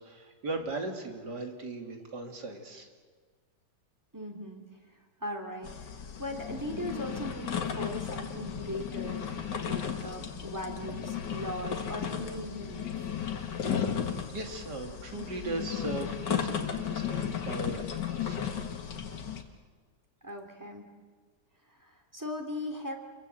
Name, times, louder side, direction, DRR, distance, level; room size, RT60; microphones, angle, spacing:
voice 1, 0.0-2.9 14.3-18.5, right 2 dB, 70° right, 3 dB, 3.4 m, -38 dB
voice 2, 4.1-4.6 5.2-12.9 20.2-20.8 21.7-23.0, equal, 10° right, 3 dB, 3.2 m, -39 dB
sound 1, 5.6-19.4, left 8 dB, 80° left, 2.3 m, -35 dB
29.0 x 22.0 x 7.8 m, 1.5 s
omnidirectional pair, 1.8 m